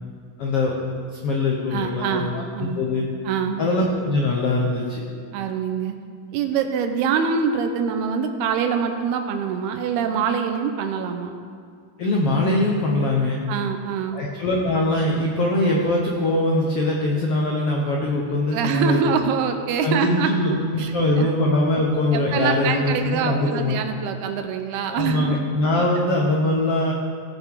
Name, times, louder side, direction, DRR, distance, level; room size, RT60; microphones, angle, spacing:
voice 1, 0.4-0.7 1.1-3.1 3.6-5.0 12.0-13.4 14.1-19.2 19.8-23.8 24.9-26.9, left 2 dB, 85° left, -1 dB, 1.3 m, -22 dB
voice 2, 1.7-2.3 2.6-2.9 3.3-3.7 5.3-6.0 6.3-11.3 13.5-14.2 18.5-20.9 21.2-21.3 22.1-25.4, right 6 dB, 85° right, 6 dB, 2.8 m, -24 dB
18.0 x 7.5 x 4.8 m, 2.3 s
omnidirectional pair, 4.5 m